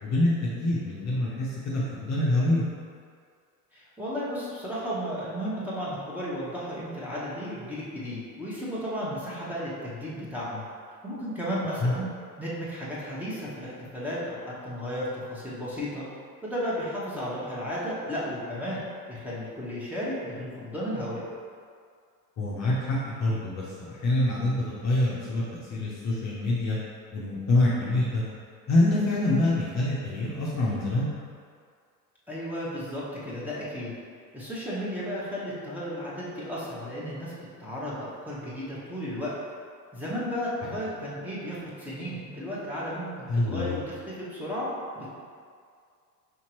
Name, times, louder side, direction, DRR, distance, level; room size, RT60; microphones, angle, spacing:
voice 1, 0.0-2.6 11.8-11.9 22.4-26.8 27.1-28.2 28.7-31.1 40.7-40.8 43.3-43.8, left 2 dB, 35° left, -6 dB, 0.8 m, -26 dB
voice 2, 3.7-10.6 11.0-12.1 12.4-16.1 16.4-18.8 19.1-21.2 32.3-33.9 34.3-37.3 37.6-39.3 39.9-45.1, equal, 5° right, -9 dB, 1.1 m, -34 dB
5.1 x 2.8 x 3.0 m, 2.2 s
hypercardioid pair, 75°, 49 cm